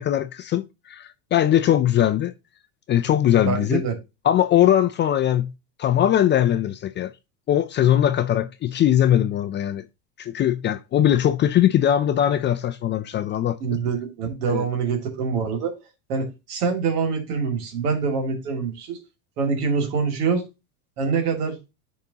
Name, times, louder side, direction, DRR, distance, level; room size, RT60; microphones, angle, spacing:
voice 1, 0.0-2.3 2.9-3.8 4.2-5.5 5.8-7.1 7.5-9.8 10.2-13.6 14.5-14.7, left 11 dB, 25° left, 0.3 m, -20 dB
voice 2, 3.4-3.9 13.6-15.7 16.1-19.0 19.4-20.4 21.0-21.6, right 5 dB, 85° right, 2.6 m, -25 dB
10.5 x 3.6 x 2.8 m
supercardioid pair, 115°, 45 cm